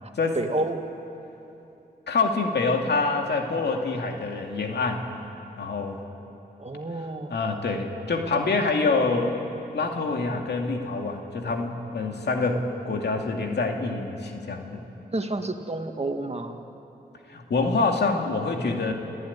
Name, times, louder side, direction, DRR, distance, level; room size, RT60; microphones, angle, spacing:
voice 1, 0.0-0.9 6.6-7.3 15.1-16.6, right 2 dB, 40° right, 5 dB, 2.0 m, -30 dB
voice 2, 2.1-5.1 5.6-6.0 7.3-9.4 9.7-14.9 17.3-18.9, left 3 dB, 80° left, 2 dB, 2.3 m, -26 dB
29.0 x 14.5 x 9.7 m, 3.0 s
cardioid pair, 45°, 17 cm